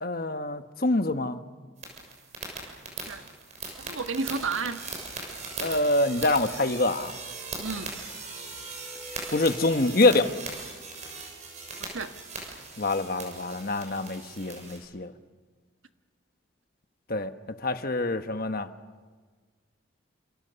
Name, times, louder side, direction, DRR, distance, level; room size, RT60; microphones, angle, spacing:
voice 1, 0.0-1.4 5.6-7.1 9.3-10.3 12.8-15.1 17.1-17.3 17.6-18.7, left 2 dB, 45° left, 9 dB, 1.2 m, -25 dB
sound 1, 1.8-14.8, right 3 dB, 35° right, 6.8 m, -39 dB
voice 2, 3.8-4.8 7.6-7.9 11.9-12.1, right 4 dB, 90° right, 8 dB, 1.4 m, -31 dB
29.5 x 28.0 x 7.0 m, 1.5 s
head